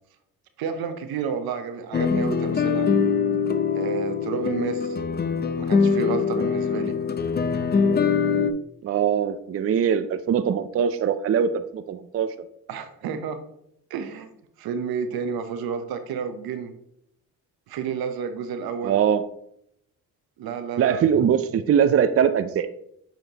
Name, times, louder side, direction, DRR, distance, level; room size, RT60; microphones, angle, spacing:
voice 1, 0.6-2.9 3.7-5.0 5.6-7.0 12.7-13.4 13.9-14.3 14.6-16.7 17.7-19.0 20.4-21.0, right 6 dB, 80° right, 8 dB, 0.8 m, -30 dB
sound 1, 1.9-8.5, left 6 dB, 30° left, 0.5 m, -23 dB
voice 2, 8.8-12.3 18.8-19.2 20.8-22.7, right 8 dB, 40° right, 11 dB, 0.5 m, -22 dB
7.9 x 4.4 x 2.9 m, 0.73 s
cardioid pair, 70°, 36 cm